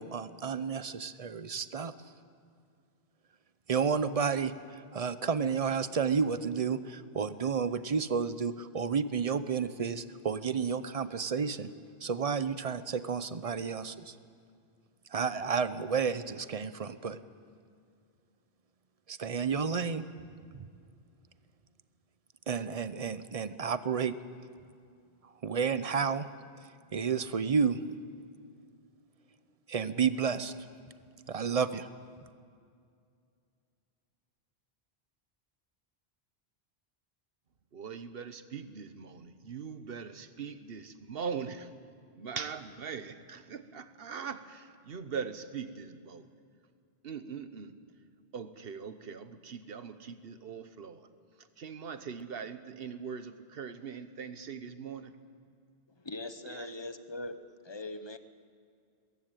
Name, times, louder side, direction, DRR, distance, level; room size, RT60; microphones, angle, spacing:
voice 1, 0.0-1.9 3.7-11.7 12.0-14.1 15.1-17.2 19.1-20.0 20.5-20.7 22.5-24.1 25.4-26.3 26.9-27.8 29.7-30.5 31.3-31.9, right 6 dB, 40° right, 14 dB, 0.7 m, -31 dB
voice 2, 37.7-41.7 42.1-46.3 47.0-47.7 48.3-51.1 51.4-55.2 56.5-56.7, right 6 dB, 65° right, 11 dB, 1.2 m, -41 dB
voice 3, 56.0-58.2, left 2 dB, 30° left, 11 dB, 0.9 m, -41 dB
21.0 x 15.5 x 9.1 m, 2.3 s
omnidirectional pair, 1.1 m